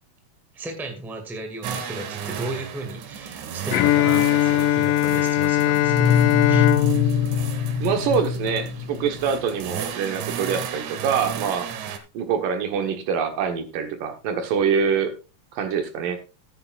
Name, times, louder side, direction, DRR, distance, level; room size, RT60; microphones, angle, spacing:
voice 1, 0.5-6.2 6.5-6.8 11.7-11.9, right 2 dB, ahead, 5 dB, 1.2 m, -35 dB
sound 1, 1.6-12.0, right 8 dB, 70° right, 2.4 m, -35 dB
Bowed string instrument, 3.7-8.6, left 13 dB, 85° left, 2.3 m, -21 dB
sound 2, 5.8-9.5, left 6 dB, 70° left, 2.6 m, -24 dB
voice 2, 7.8-11.7 12.1-15.1 15.5-16.2, right 6 dB, 90° right, 6 dB, 3.0 m, -25 dB
14.0 x 9.7 x 2.4 m, 0.31 s
omnidirectional pair, 3.8 m